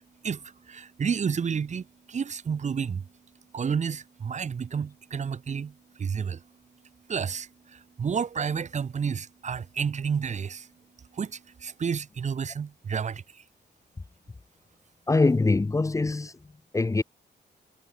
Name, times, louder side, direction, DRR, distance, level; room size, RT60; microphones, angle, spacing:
voice 1, 0.2-3.0 3.5-6.4 7.1-10.7 11.1-13.4, right 6 dB, 40° right, 1.7 m, -31 dB
voice 2, 15.1-16.3 16.7-17.0, left 3 dB, 15° left, 1.2 m, -23 dB
wide cardioid pair, 180°, 18 cm